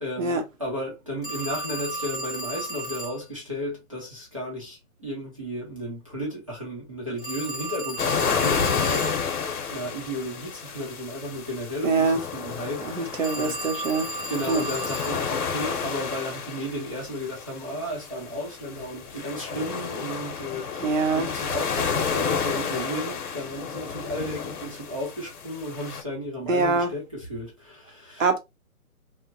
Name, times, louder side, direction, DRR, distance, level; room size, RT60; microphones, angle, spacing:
voice 1, 0.0-13.7 14.3-28.3, equal, 25° right, 0.7 m, -34 dB
Telephone, 1.2-3.2 7.2-9.2 13.2-15.2, right 1 dB, 40° left, 0.4 m, -34 dB
sound 1, 8.0-26.0, left 6 dB, 85° left, 0.8 m, -31 dB
voice 2, 11.8-12.2 12.9-14.1 14.5-14.6 20.8-21.3 26.5-26.9 28.2-28.4, right 4 dB, 60° right, 0.8 m, -24 dB
2.7 x 2.1 x 2.6 m
hypercardioid pair, 180°, 44 cm